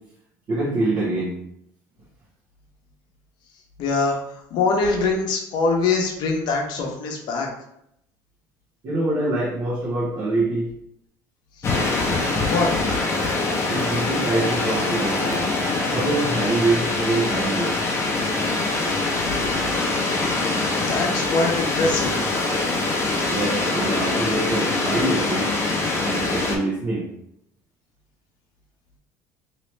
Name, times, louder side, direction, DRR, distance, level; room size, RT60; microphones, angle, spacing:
voice 1, 0.5-1.3 8.8-10.7 13.7-15.4 15.9-17.7 23.2-25.5 26.0-27.0, right 2 dB, 45° right, -6 dB, 1.1 m, -25 dB
voice 2, 3.8-4.2 4.5-7.5 12.5-12.7 20.9-22.5, left 3 dB, 60° left, 1 dB, 0.9 m, -23 dB
sound 1, 11.6-26.6, left 3 dB, 35° left, 0.8 m, -24 dB
3.1 x 3.0 x 3.1 m, 0.76 s
supercardioid pair, 105°, 8 cm